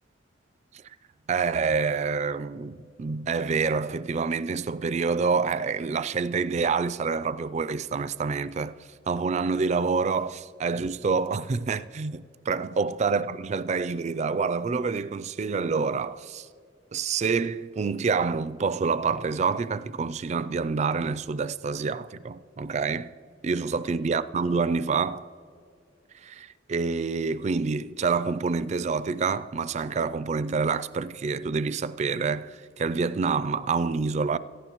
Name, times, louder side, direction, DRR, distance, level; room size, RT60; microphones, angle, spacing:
voice 1, 1.3-8.8 9.1-16.5 16.9-23.1 23.4-25.3 26.2-34.4, right 4 dB, 35° right, 0.3 m, -27 dB
18.0 x 14.5 x 3.0 m
head